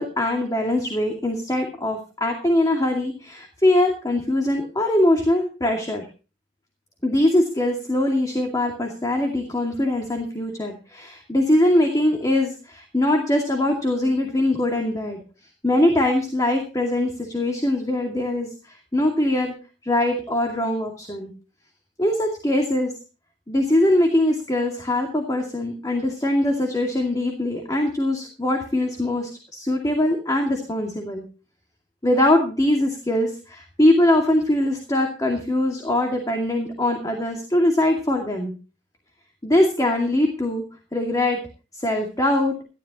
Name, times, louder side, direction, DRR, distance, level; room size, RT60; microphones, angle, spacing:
voice 1, 0.0-6.1 7.0-15.2 15.6-19.5 19.8-21.3 22.0-22.9 23.5-31.2 32.0-38.5 39.4-40.6 40.9-41.4 41.7-42.5, left 1 dB, 20° left, 2 dB, 2.3 m, -22 dB
19.0 x 13.0 x 3.0 m, 0.34 s
head